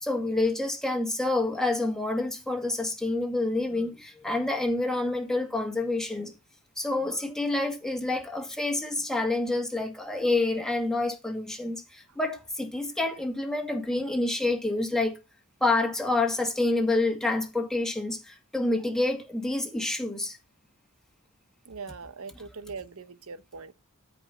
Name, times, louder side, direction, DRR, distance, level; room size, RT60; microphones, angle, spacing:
voice 1, 0.0-6.3 6.8-15.2 15.6-20.4, left 2 dB, ahead, 2.0 m, -28 dB
voice 2, 21.7-23.7, right 4 dB, 70° right, 0.9 m, -41 dB
13.5 x 5.3 x 5.1 m
head